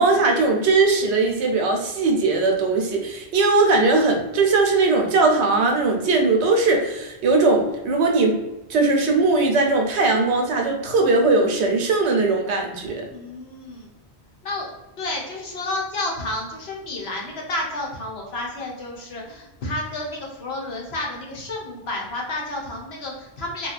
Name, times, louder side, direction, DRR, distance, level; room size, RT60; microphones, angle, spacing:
voice 1, 0.0-8.4 8.7-13.0, right 3 dB, 80° right, 2 dB, 0.9 m, -19 dB
voice 2, 13.1-13.9 14.4-14.7 15.0-23.7, left 2 dB, 70° left, -1 dB, 0.9 m, -31 dB
2.9 x 2.2 x 2.4 m, 0.98 s
omnidirectional pair, 1.1 m